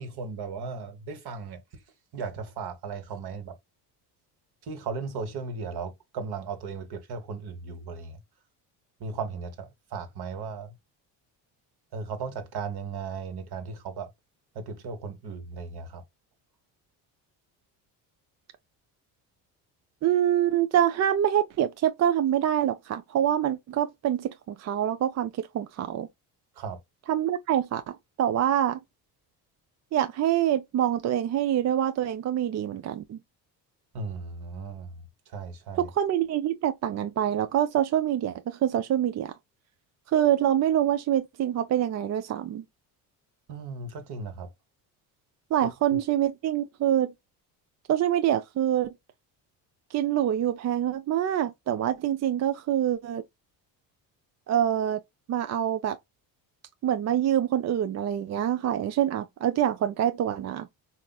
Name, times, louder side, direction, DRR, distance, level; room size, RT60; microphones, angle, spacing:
voice 1, 0.0-1.6 2.1-3.6 4.6-8.2 9.0-10.7 11.9-14.1 14.5-16.0 26.5-26.8 33.9-35.9 43.5-44.5, right 4 dB, 60° right, 1.3 m, -36 dB
voice 2, 20.0-26.1 27.1-28.8 29.9-33.2 35.8-39.3 40.1-42.6 45.5-47.1 47.9-48.9 49.9-53.2 54.5-55.0 55.3-56.0 56.8-60.7, right 11 dB, 40° right, 0.4 m, -25 dB
4.2 x 2.5 x 2.2 m
supercardioid pair, 75°, 45 cm